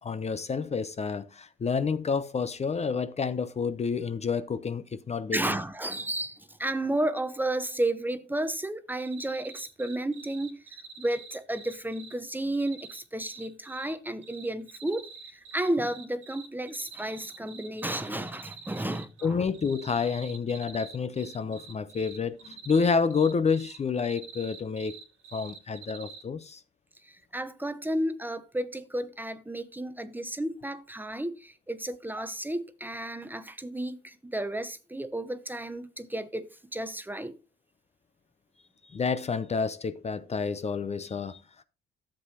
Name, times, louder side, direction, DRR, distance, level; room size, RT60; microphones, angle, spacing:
voice 1, 0.0-5.6 19.2-25.0 25.3-26.6 38.8-41.4, left 5 dB, 35° left, 0.6 m, -29 dB
voice 2, 5.3-19.4 27.0-37.4, right 1 dB, 10° right, 0.7 m, -32 dB
sound 1, 9.0-12.1 12.5-13.9 14.2-19.2 19.5-26.2, right 6 dB, 80° right, 1.7 m, -46 dB
11.5 x 7.5 x 2.8 m
cardioid pair, 90°, 20 cm